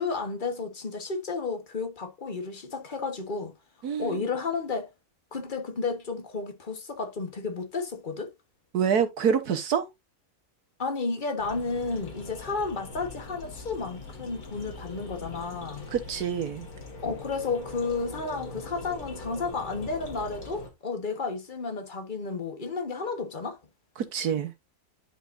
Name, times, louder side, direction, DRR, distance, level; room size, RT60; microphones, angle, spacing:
voice 1, 0.0-3.5 4.0-4.9 5.3-8.3 10.8-15.9 17.0-23.6, left 4 dB, 35° left, 1.4 m, -32 dB
voice 2, 3.8-4.2 8.7-9.9 15.9-16.7 24.0-24.5, right 7 dB, 90° right, 1.8 m, -26 dB
sound 1, 11.4-20.7, left 2 dB, 75° left, 2.6 m, -42 dB
11.0 x 5.2 x 2.6 m
omnidirectional pair, 1.6 m